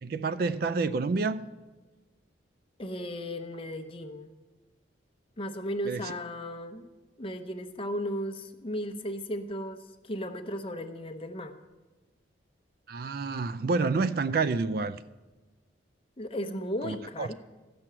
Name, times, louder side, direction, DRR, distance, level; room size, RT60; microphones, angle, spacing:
voice 1, 0.0-1.5 5.8-6.1 12.9-15.0 16.8-17.3, right 4 dB, 50° right, 0.4 m, -29 dB
voice 2, 2.8-4.3 5.4-6.9 7.2-9.8 10.0-11.6 16.2-17.3, equal, 30° left, 0.8 m, -35 dB
13.5 x 6.1 x 8.7 m
head